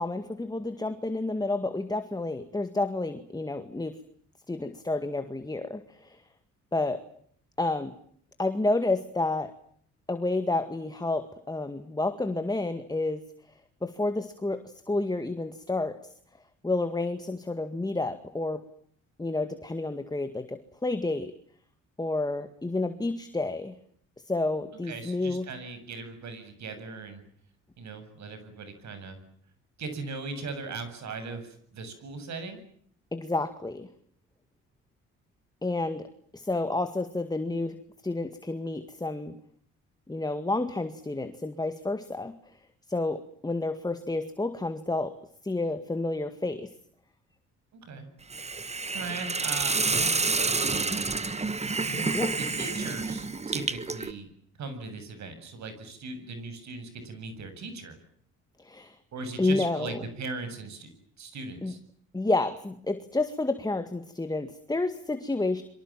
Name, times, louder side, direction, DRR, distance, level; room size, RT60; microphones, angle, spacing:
voice 1, 0.0-4.0 4.5-6.2 6.7-7.0 7.6-7.9 8.4-9.5 10.1-13.2 13.8-16.0 16.6-18.6 19.2-21.3 22.0-23.8 24.3-25.5 33.1-33.9 35.6-36.1 36.3-37.8 38.0-39.3 40.1-42.3 42.9-45.2 45.4-46.7 52.1-52.3 58.6-59.0 59.4-60.0 61.6-61.7 62.1-65.6, left 2 dB, 15° left, 9 dB, 2.0 m, -30 dB
voice 2, 24.8-27.2 27.8-29.2 29.8-32.6 47.7-48.1 48.9-51.1 51.8-54.3 54.6-58.0 59.1-60.9 61.2-61.8, right 3 dB, 65° right, 10 dB, 7.7 m, -39 dB
Hiss, 48.3-54.1, right 3 dB, 20° right, 1.7 m, -29 dB
28.5 x 24.5 x 7.5 m, 0.63 s
cardioid pair, 90°, 30 cm